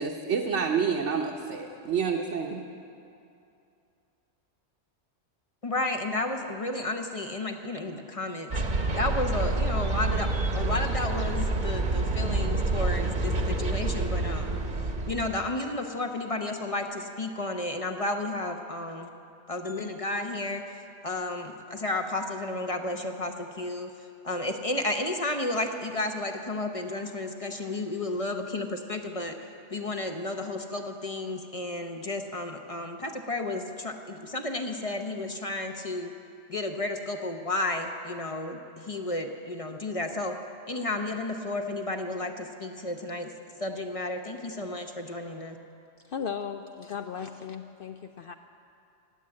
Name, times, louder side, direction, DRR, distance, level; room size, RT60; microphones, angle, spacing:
voice 1, 0.0-2.6, right 6 dB, 65° right, -1 dB, 1.2 m, -28 dB
voice 2, 5.6-8.6 9.0-14.6 15.1-19.1 19.5-20.7 21.0-23.9 24.2-29.4 29.7-36.1 36.5-40.3 40.7-43.3 43.6-45.6, left 2 dB, 30° left, 5 dB, 0.8 m, -32 dB
sound 1, 8.5-15.5, right 2 dB, 40° right, 1.1 m, -28 dB
voice 3, 46.1-48.3, left 7 dB, 60° left, 7 dB, 0.6 m, -36 dB
17.5 x 8.1 x 8.6 m, 2.7 s
omnidirectional pair, 1.3 m